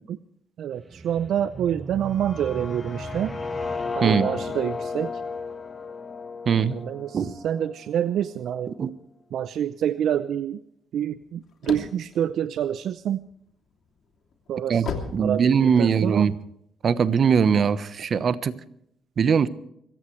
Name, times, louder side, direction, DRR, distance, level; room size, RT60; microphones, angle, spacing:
voice 1, 0.6-3.3 3.9-5.2 6.7-8.7 9.3-10.6 10.9-13.2 14.5-16.3, right 10 dB, 70° right, 13 dB, 0.5 m, -27 dB
sound 1, 0.7-5.7, right 4 dB, 30° right, 1.3 m, -40 dB
sound 2, 2.0-8.0, left 4 dB, 35° left, 1.5 m, -34 dB
voice 2, 4.0-4.3 6.5-6.7 7.1-7.3 8.8-8.9 14.7-14.9 15.1-16.4 16.8-18.5 19.2-19.5, right 6 dB, 50° right, 14 dB, 1.0 m, -21 dB
sound 3, 11.1-13.3 13.8-16.0, left 5 dB, 65° left, 2.8 m, -35 dB
25.5 x 15.0 x 3.2 m, 0.73 s
cardioid pair, 90°, 0 cm